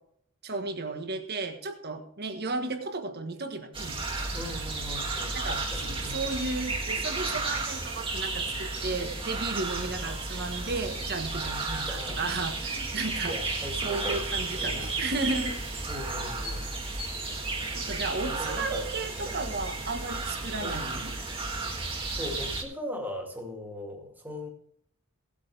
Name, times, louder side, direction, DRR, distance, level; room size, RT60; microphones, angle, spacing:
voice 1, 0.4-4.4 5.3-5.6 6.1-13.4 13.8-15.6 17.7-21.1, right 3 dB, 50° right, 6 dB, 1.4 m, -34 dB
sound 1, 3.7-22.6, right 3 dB, 25° right, 1.6 m, -33 dB
voice 2, 4.3-6.3 11.9-12.3 13.3-14.2 14.5-15.0 15.9-16.7 18.2-18.8 19.3-19.4 20.6-20.9 22.1-24.5, left 1 dB, 10° right, 1 dB, 2.3 m, -39 dB
sound 2, 5.8-7.3 9.8-10.4, right 1 dB, 75° right, 2.3 m, -50 dB
17.5 x 8.5 x 3.4 m, 0.69 s
head